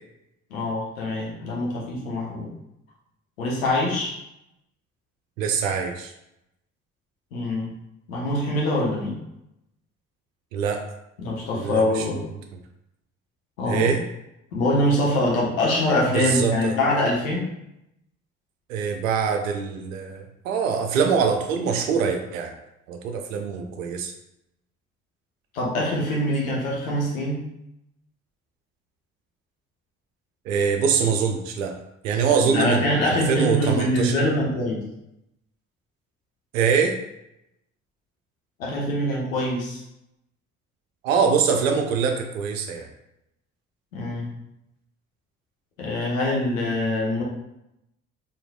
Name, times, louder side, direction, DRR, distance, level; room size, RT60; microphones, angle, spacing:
voice 1, 0.5-2.5 3.4-4.2 7.3-7.7 8.1-9.2 11.2-12.2 13.6-13.9 14.5-17.5 25.5-27.4 32.4-34.8 38.6-39.8 43.9-44.3 45.8-47.2, left 1 dB, 75° left, -3 dB, 1.0 m, -24 dB
voice 2, 5.4-6.1 10.5-10.8 11.5-12.0 13.6-14.0 16.1-16.7 18.7-22.5 22.9-24.1 30.5-31.8 32.0-34.1 36.5-37.0 41.0-42.9, right 6 dB, 70° right, 4 dB, 0.6 m, -23 dB
4.6 x 3.0 x 2.3 m, 0.84 s
figure-of-eight pair, 45°, 41 cm